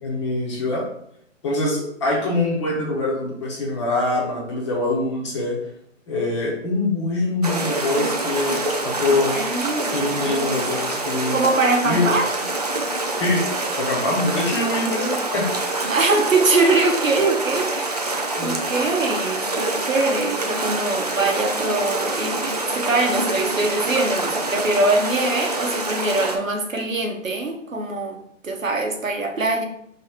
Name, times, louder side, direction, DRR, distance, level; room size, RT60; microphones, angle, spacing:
voice 1, 0.0-0.9 1.4-5.6 6.1-9.4 9.8-11.4 11.8-12.2 13.2-13.4 13.8-15.5 18.4-18.6, left 2 dB, 20° left, -4 dB, 1.0 m, -24 dB
sound 1, 7.4-26.4, right 2 dB, 35° right, 0.4 m, -26 dB
voice 2, 9.1-10.6 11.3-12.3 15.9-18.1 18.4-28.2 28.4-29.7, right 3 dB, 80° right, 3 dB, 1.1 m, -23 dB
4.7 x 3.1 x 3.4 m, 0.70 s
figure-of-eight pair, 145°, 39 cm